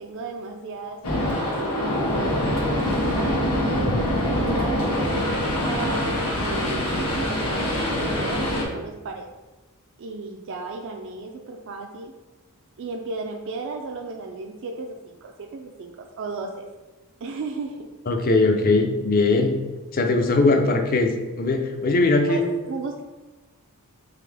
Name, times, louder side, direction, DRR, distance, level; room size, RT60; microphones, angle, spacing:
voice 1, 0.0-4.0 4.4-9.3 10.0-12.2 12.8-16.7 17.2-17.9 22.3-23.0, right 3 dB, 55° right, 2 dB, 0.4 m, -35 dB
sound 1, 1.0-8.6, left 1 dB, 85° left, 1.4 m, -24 dB
voice 2, 18.1-19.5 19.9-22.4, left 3 dB, 40° left, 5 dB, 0.5 m, -20 dB
4.1 x 3.7 x 3.3 m, 1.2 s
head